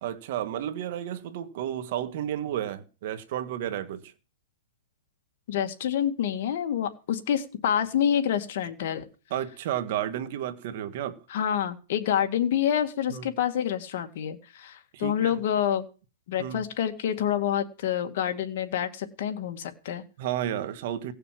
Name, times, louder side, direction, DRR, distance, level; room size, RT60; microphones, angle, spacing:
voice 1, 0.0-4.1 9.3-11.2 13.1-13.3 14.9-15.4 16.4-16.6 20.2-21.1, right 11 dB, 50° right, 1.9 m, -32 dB
voice 2, 5.5-9.1 11.3-15.8 16.3-20.0, left 9 dB, 55° left, 2.2 m, -27 dB
17.5 x 6.8 x 7.8 m
hypercardioid pair, 155°, 0 cm